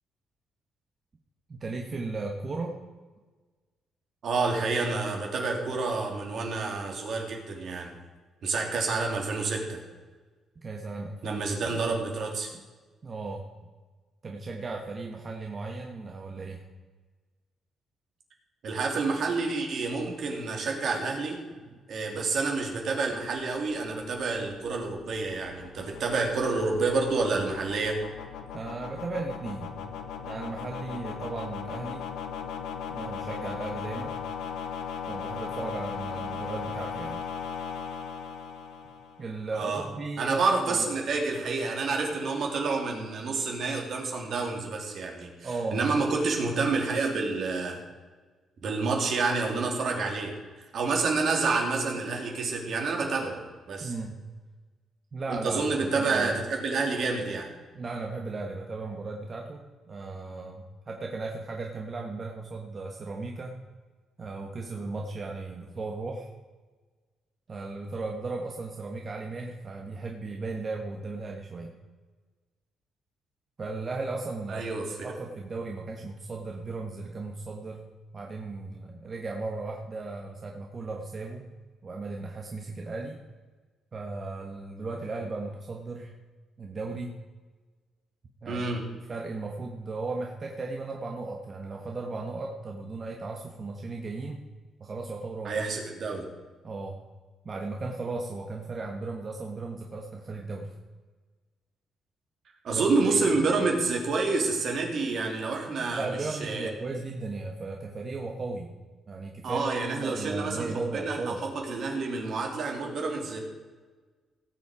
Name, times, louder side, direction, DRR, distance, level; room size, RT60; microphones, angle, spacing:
voice 1, 1.5-2.8 10.5-11.4 11.7-11.8 13.0-13.5 14.2-16.6 21.7-21.8 28.5-29.8 30.2-32.1 32.9-34.2 35.1-37.2 39.2-40.9 45.4-45.8 53.8-54.2 55.1-56.4 57.7-63.6 64.2-66.3 67.5-71.7 73.6-74.6 75.0-77.9 78.1-81.5 81.8-83.2 83.9-86.1 86.6-87.2 88.4-88.6 89.1-94.4 94.8-95.5 96.6-97.0 97.4-100.7 102.7-103.2 106.0-108.7 109.1-109.7 110.0-111.4, right 3 dB, 40° right, 1 dB, 1.4 m, -36 dB
voice 2, 4.2-7.9 8.4-9.8 11.2-12.5 18.6-21.4 21.9-28.0 39.5-39.9 40.2-47.8 48.6-53.9 55.3-57.5 74.5-75.0 88.5-88.8 95.4-96.3 102.6-106.7 109.4-113.4, right 3 dB, 60° right, 1 dB, 2.9 m, -28 dB
sound 1, 23.4-39.4, left 7 dB, 85° left, 1.3 m, -38 dB
17.5 x 7.2 x 5.0 m, 1.4 s
cardioid pair, 90°, 0 cm